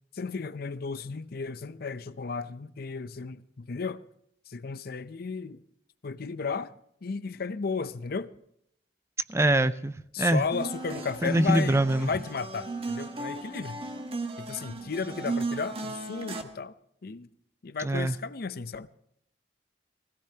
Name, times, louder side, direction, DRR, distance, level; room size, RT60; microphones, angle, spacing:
voice 1, 0.1-4.0 4.5-5.6 6.0-6.7 7.0-8.3 10.1-13.8 14.4-16.7 17.0-17.3 17.6-18.9, left 5 dB, 60° left, 0.6 m, -34 dB
voice 2, 9.3-10.4 11.2-12.1 17.8-18.1, right 1 dB, 15° right, 0.5 m, -24 dB
sound 1, 10.5-16.4, right 2 dB, 35° right, 1.3 m, -36 dB
20.5 x 16.5 x 2.9 m
head